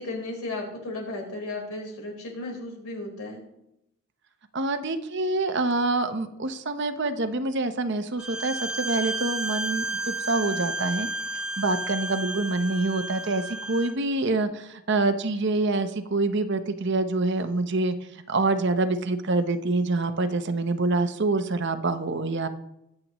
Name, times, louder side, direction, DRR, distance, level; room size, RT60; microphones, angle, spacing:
voice 1, 0.0-3.4, left 2 dB, 80° left, -1 dB, 4.2 m, -34 dB
voice 2, 4.5-11.1 11.3-18.0 18.3-22.5, right 2 dB, 50° right, 9 dB, 0.8 m, -26 dB
Bowed string instrument, 8.2-13.9, right 2 dB, 5° right, 0.8 m, -32 dB
22.5 x 7.7 x 3.1 m, 0.84 s
head